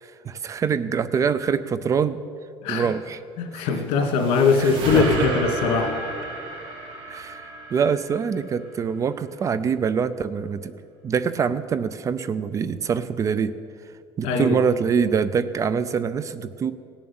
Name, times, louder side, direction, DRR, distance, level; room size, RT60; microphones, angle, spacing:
voice 1, 0.0-2.2 2.7-3.2 4.6-5.3 7.1-10.7 11.0-13.5 14.2-16.7, right 6 dB, 30° right, 15 dB, 0.5 m, -25 dB
voice 2, 3.4-6.0 14.2-14.6, left 4 dB, 70° left, 2 dB, 2.6 m, -21 dB
sound 1, 3.6-9.0, right 2 dB, 55° right, 3.5 m, -32 dB
17.5 x 7.2 x 8.7 m, 2.3 s
cardioid pair, 140°, 11 cm